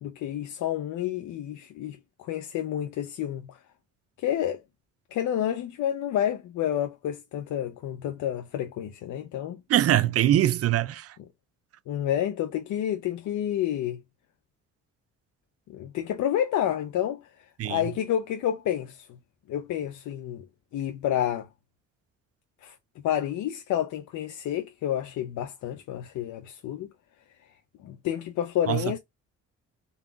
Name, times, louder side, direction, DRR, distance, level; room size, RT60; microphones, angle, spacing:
voice 1, 0.0-3.6 4.2-4.6 5.1-9.6 11.9-14.0 15.7-17.2 17.6-19.1 19.5-20.5 20.7-21.5 22.6-22.8 23.0-26.9 27.8-29.0, left 11 dB, 75° left, 0.6 m, -29 dB
voice 2, 9.7-11.1 17.6-17.8 28.7-29.0, right 12 dB, 50° right, 0.5 m, -23 dB
3.9 x 2.4 x 3.8 m
cardioid pair, 90°, 30 cm